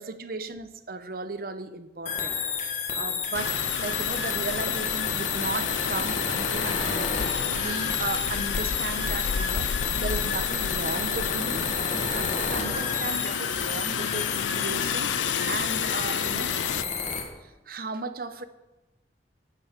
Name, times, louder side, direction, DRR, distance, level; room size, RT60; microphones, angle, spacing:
voice 1, 0.0-2.4 2.9-11.6 11.9-16.6 17.4-18.4, right 3 dB, 50° right, 12 dB, 0.8 m, -36 dB
sound 1, 2.1-17.2, left 6 dB, 40° left, 1.7 m, -30 dB
Rain, 3.3-16.8, left 7 dB, 85° left, 0.5 m, -31 dB
sound 2, 7.5-7.8 8.0-8.5 9.0-9.3 9.5-9.8 11.5-11.8 12.0-12.5 13.0-13.3 13.5-13.8 14.0-14.1, right 1 dB, 85° right, 1.3 m, -46 dB
9.3 x 9.3 x 7.4 m, 1.1 s
head